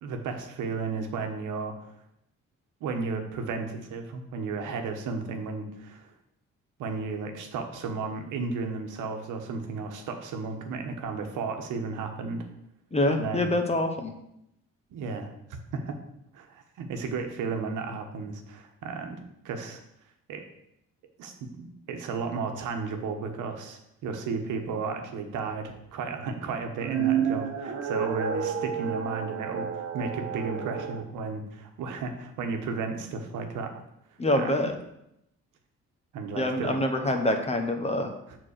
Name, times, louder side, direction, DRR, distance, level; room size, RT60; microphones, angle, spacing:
voice 1, 0.0-1.7 2.8-6.1 6.8-12.5 13.1-13.5 14.9-15.3 15.7-15.9 16.3-19.8 20.3-20.4 21.2-33.7 34.3-34.7 36.1-36.7 37.0-37.1 38.3-38.4, right 4 dB, 85° right, 4 dB, 1.2 m, -34 dB
voice 2, 12.9-14.1 34.2-34.7 36.4-38.1, left 1 dB, 20° left, 4 dB, 1.0 m, -25 dB
sound 1, 26.6-31.0, right 8 dB, 50° right, 1.1 m, -30 dB
7.2 x 4.0 x 6.4 m, 0.81 s
cardioid pair, 90°, 30 cm